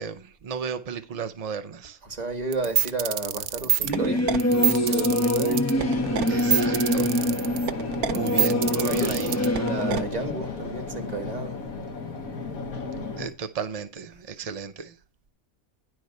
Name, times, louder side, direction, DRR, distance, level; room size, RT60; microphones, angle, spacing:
voice 1, 0.0-2.0 6.3-7.1 8.1-9.4 13.2-15.0, right 6 dB, 60° right, 0.4 m, -34 dB
voice 2, 2.0-4.3 4.8-5.7 8.4-8.5 8.8-9.2 9.6-11.6, right 2 dB, 30° right, 1.4 m, -32 dB
sound 1, 2.5-10.0, right 9 dB, 90° right, 1.2 m, -26 dB
Singing / Musical instrument, 3.8-10.0, left 1 dB, 15° left, 0.8 m, -25 dB
sound 2, 5.7-13.3, left 3 dB, 75° left, 1.7 m, -34 dB
10.0 x 4.6 x 6.4 m
omnidirectional pair, 1.5 m